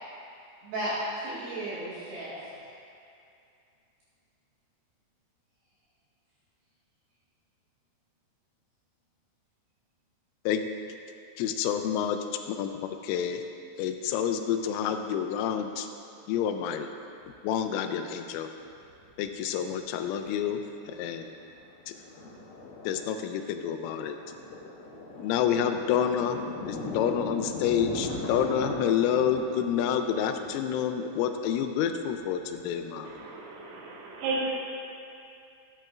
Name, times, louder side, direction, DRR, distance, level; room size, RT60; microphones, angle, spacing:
voice 1, 0.6-2.7, right 1 dB, 65° right, -11 dB, 3.3 m, -34 dB
voice 2, 11.4-13.4 13.8-15.9 16.3-16.9 17.4-18.5 19.2-20.6 20.9-21.3 21.9-22.0 22.8-24.2 25.2-26.4 26.6-33.1, left 8 dB, 85° left, 7 dB, 3.1 m, -28 dB
Thunder, 17.2-17.3 18.7-19.5 19.7-19.8 20.2-20.5 20.9-33.3, left 2 dB, 70° left, 2.5 m, -39 dB
voice 3, 33.1-34.5, right 3 dB, 85° right, -4 dB, 3.7 m, -33 dB
12.0 x 8.7 x 2.4 m, 2.5 s
omnidirectional pair, 5.6 m